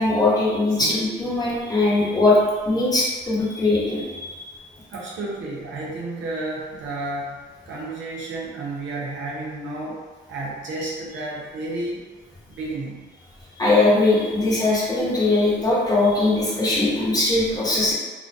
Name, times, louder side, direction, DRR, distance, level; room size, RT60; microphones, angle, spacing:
voice 1, 0.0-4.4 13.5-17.9, left 2 dB, 20° left, -8 dB, 0.8 m, -20 dB
voice 2, 4.9-12.0 12.5-13.1, right 2 dB, 70° right, -4 dB, 0.6 m, -32 dB
2.3 x 2.1 x 2.5 m, 1.4 s
cardioid pair, 90°, 20 cm